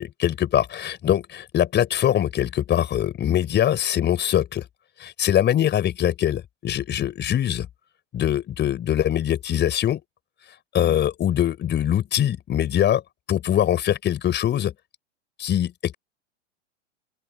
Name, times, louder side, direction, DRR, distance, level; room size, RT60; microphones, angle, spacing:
voice 1, 0.0-4.6 5.0-7.7 8.1-10.0 10.7-13.0 13.3-14.7 15.4-15.9, left 11 dB, 30° left, 5.0 m, -22 dB
open air
hypercardioid pair, 110°, 37 cm